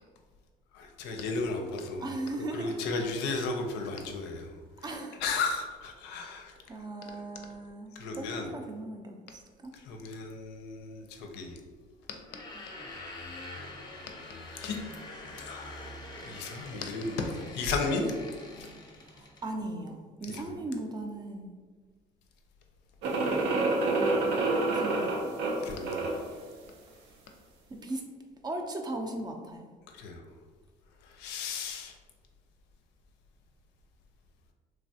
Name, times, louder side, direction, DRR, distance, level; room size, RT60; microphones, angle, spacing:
voice 1, 0.7-2.1 2.5-4.6 5.2-6.5 7.9-8.5 9.7-11.6 14.5-14.8 15.4-16.0 16.2-18.1 18.6-18.7 20.3-20.6 25.6-26.1 29.9-30.2 31.0-31.9, left 3 dB, 90° left, 3 dB, 0.5 m, -34 dB
voice 2, 2.0-2.8 3.2-3.4 4.8-5.2 6.5-9.7 19.1-21.5 23.8-25.5 27.7-28.0 28.4-29.7, right 2 dB, 25° right, 4 dB, 0.4 m, -38 dB
sound 1, 12.2-19.5, left 2 dB, 25° left, 0.6 m, -45 dB
sound 2, 23.0-26.3, right 2 dB, 85° right, 0.5 m, -28 dB
3.1 x 2.3 x 2.7 m, 1.5 s
cardioid pair, 110°, 17 cm